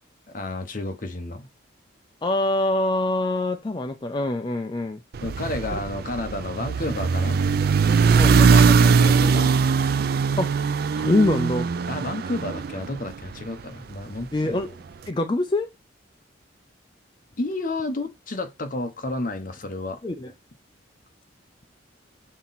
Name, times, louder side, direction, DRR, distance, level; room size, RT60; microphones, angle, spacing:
voice 1, 0.3-1.5 5.2-7.4 8.3-9.5 11.9-14.6 17.4-20.0, left 2 dB, 40° left, 0.9 m, -31 dB
voice 2, 2.2-5.0 5.7-5.8 8.1-8.4 10.4-10.5 11.0-11.7 14.3-14.8 15.1-15.7 20.0-20.3, left 2 dB, 20° left, 0.4 m, -24 dB
sound 1, 5.1-13.5, right 5 dB, 50° right, 0.3 m, -20 dB
6.0 x 4.2 x 4.0 m
head